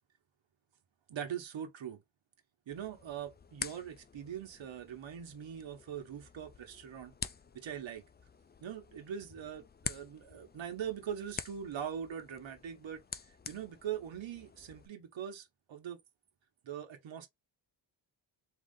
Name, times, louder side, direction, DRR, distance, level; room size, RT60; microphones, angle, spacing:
voice 1, 1.1-2.0 2.7-7.1 7.5-8.0 8.6-13.0 13.5-16.0 16.6-17.3, right 9 dB, 80° right, 1.2 m, -42 dB
sound 1, 2.7-14.9, left 5 dB, 25° left, 0.4 m, -47 dB
3.7 x 2.8 x 3.9 m
cardioid pair, 90°, 45 cm